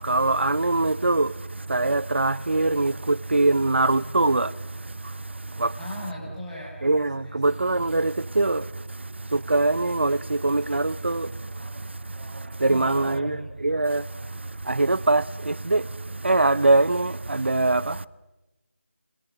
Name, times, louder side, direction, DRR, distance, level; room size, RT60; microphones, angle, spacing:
voice 1, 0.0-1.3 1.7-4.5 5.6-5.7 6.8-8.7 9.3-11.3 12.3-14.0 14.6-15.9 16.2-18.1, right 2 dB, 60° right, 0.8 m, -22 dB
voice 2, 5.8-7.6 12.6-13.5, left 1 dB, 5° left, 5.1 m, -39 dB
27.5 x 25.5 x 7.5 m
figure-of-eight pair, 165°, 7 cm